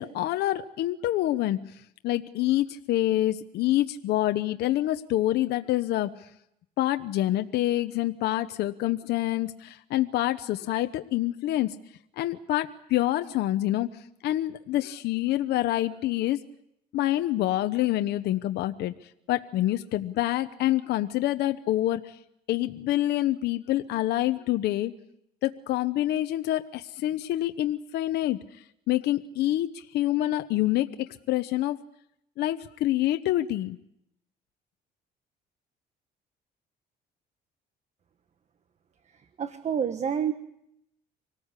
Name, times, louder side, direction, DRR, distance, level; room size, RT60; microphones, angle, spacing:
voice 1, 0.0-1.6 2.0-6.2 6.8-11.8 12.2-13.9 14.2-16.4 16.9-18.9 19.3-22.2 22.5-24.9 25.4-28.4 28.9-31.8 32.4-33.8, left 14 dB, 75° left, 9 dB, 0.9 m, -26 dB
voice 2, 39.1-40.3, right 8 dB, 40° right, 10 dB, 1.3 m, -29 dB
25.0 x 19.0 x 8.2 m, 0.80 s
cardioid pair, 110°, 17 cm